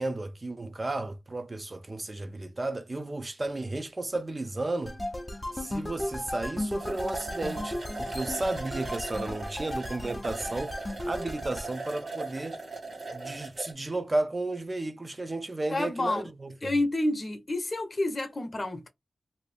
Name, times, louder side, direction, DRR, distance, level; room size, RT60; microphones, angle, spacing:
voice 1, 0.0-5.0 5.5-10.8 11.0-12.6 13.1-16.7, right 2 dB, 35° right, 0.6 m, -33 dB
sound 1, 4.9-11.7, left 1 dB, 15° left, 0.5 m, -36 dB
sound 2, 6.4-6.5 6.7-13.7, right 3 dB, 80° right, 1.3 m, -39 dB
voice 2, 15.7-16.3 16.6-18.9, left 2 dB, 40° left, 0.8 m, -29 dB
2.7 x 2.6 x 3.3 m
wide cardioid pair, 75°, 0 cm